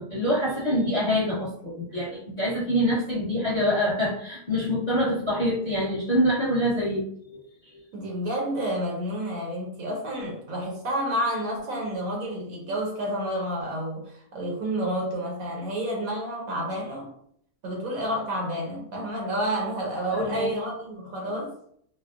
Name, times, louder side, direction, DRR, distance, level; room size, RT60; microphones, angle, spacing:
voice 1, 0.0-7.0 7.3-7.4 7.7-7.8 20.1-20.5, equal, 30° left, -8 dB, 0.8 m, -25 dB
voice 2, 7.9-17.1 17.6-21.5, equal, 65° right, -1 dB, 1.0 m, -30 dB
4.2 x 2.0 x 2.3 m, 0.67 s
omnidirectional pair, 1.8 m